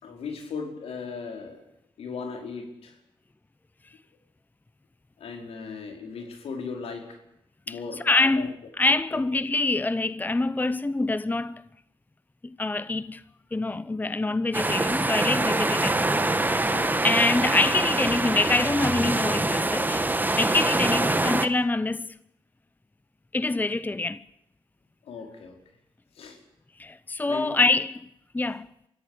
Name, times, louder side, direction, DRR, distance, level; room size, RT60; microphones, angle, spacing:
voice 1, 0.0-1.6 2.0-3.0 5.2-7.2 7.7-8.5 9.1-9.2 16.7-17.0 20.9-21.1 25.0-25.6 26.1-26.4 27.3-27.6, left 5 dB, 80° left, 5.1 m, -37 dB
voice 2, 8.0-11.6 12.4-13.2 13.5-16.8 17.0-20.0 20.4-22.1 23.3-24.2 26.8-28.0 28.3-28.7, left 3 dB, 20° left, 0.8 m, -25 dB
sound 1, 14.5-21.5, right 2 dB, 20° right, 1.8 m, -25 dB
23.5 x 15.5 x 8.2 m
cardioid pair, 60°, 10 cm